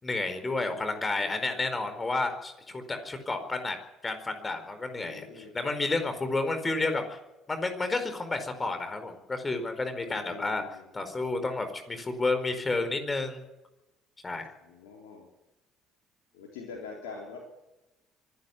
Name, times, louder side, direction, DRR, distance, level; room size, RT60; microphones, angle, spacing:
voice 1, 0.0-3.8 4.0-7.2 7.5-10.6 10.9-13.4 14.2-14.5, left 3 dB, 25° left, 8 dB, 4.6 m, -31 dB
voice 2, 0.7-1.7 4.9-5.5 10.0-10.9 14.6-15.3 16.3-17.4, left 5 dB, 75° left, -1 dB, 4.0 m, -45 dB
24.5 x 11.0 x 9.7 m, 0.99 s
hypercardioid pair, 60°, 0 cm